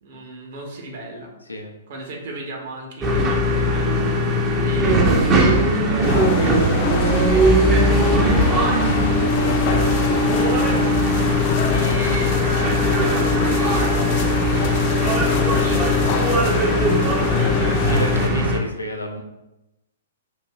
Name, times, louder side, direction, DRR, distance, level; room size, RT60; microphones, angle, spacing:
voice 1, 0.0-1.3 1.9-8.6 9.4-10.0 11.7-12.7 13.0-17.8 18.2-18.3, right 2 dB, 55° right, 0 dB, 1.1 m, -36 dB
sound 1, 3.0-18.6, equal, 25° right, 0.7 m, -20 dB
sound 2, 6.0-18.3, left 4 dB, 40° left, 0.4 m, -24 dB
voice 2, 17.9-19.2, left 2 dB, 85° left, 2 dB, 0.6 m, -30 dB
6.1 x 2.7 x 2.3 m, 0.96 s
figure-of-eight pair, 115°, 0 cm